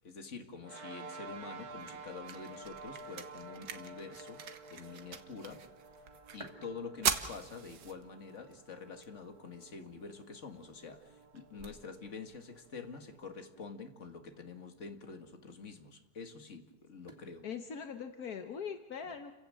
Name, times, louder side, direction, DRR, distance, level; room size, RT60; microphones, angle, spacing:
voice 1, 0.0-4.4 4.7-5.7 6.3-17.5, left 4 dB, 50° left, 2.2 m, -47 dB
sound 1, 0.6-13.4, right 3 dB, 70° right, 1.7 m, -52 dB
sound 2, 1.3-13.3, right 7 dB, 85° right, 1.9 m, -43 dB
sound 3, 4.0-18.1, right 1 dB, 20° right, 2.6 m, -63 dB
voice 2, 17.4-19.3, left 6 dB, 70° left, 1.7 m, -41 dB
29.5 x 16.0 x 7.7 m
omnidirectional pair, 1.7 m